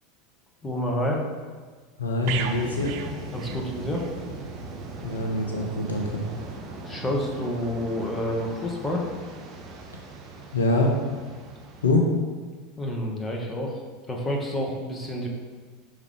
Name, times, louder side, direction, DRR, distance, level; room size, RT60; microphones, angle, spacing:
voice 1, 0.6-1.2 3.3-4.1 6.8-9.1 12.8-15.3, left 1 dB, 15° left, -1 dB, 1.3 m, -29 dB
voice 2, 2.0-2.9 5.0-6.2 10.5-10.9 11.8-12.0, left 2 dB, 85° left, 0 dB, 0.8 m, -24 dB
sound 1, 2.2-11.9, right 2 dB, 40° right, 1.0 m, -40 dB
sound 2, 2.3-4.2 4.5-4.7, right 7 dB, 60° right, 0.5 m, -35 dB
5.4 x 3.7 x 4.9 m, 1.5 s
hypercardioid pair, 80°, 0 cm